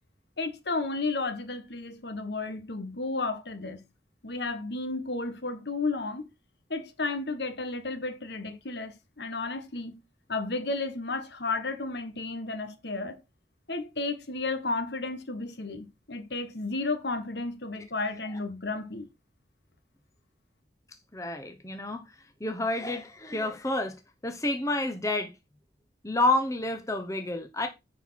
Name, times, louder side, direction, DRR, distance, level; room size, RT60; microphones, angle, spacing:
voice 1, 0.4-3.8 4.2-6.3 6.7-10.0 10.3-13.2 13.7-19.1, left 3 dB, 65° left, 1.6 m, -33 dB
voice 2, 21.1-22.1 22.4-24.0 24.2-25.3 26.0-27.7, left 2 dB, 15° left, 1.0 m, -29 dB
10.0 x 4.7 x 5.8 m
head